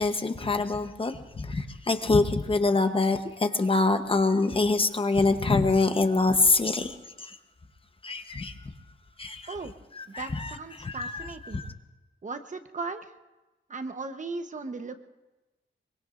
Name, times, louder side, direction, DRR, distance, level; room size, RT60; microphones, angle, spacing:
voice 1, 0.0-6.9 7.2-7.3 8.0-8.5 9.2-9.5 9.9-11.7, left 3 dB, 30° left, 7 dB, 0.9 m, -25 dB
voice 2, 10.2-11.6 12.2-13.0 13.7-15.0, right 3 dB, 40° right, 8 dB, 1.0 m, -37 dB
23.5 x 23.5 x 2.5 m, 1.1 s
wide cardioid pair, 150°, 20 cm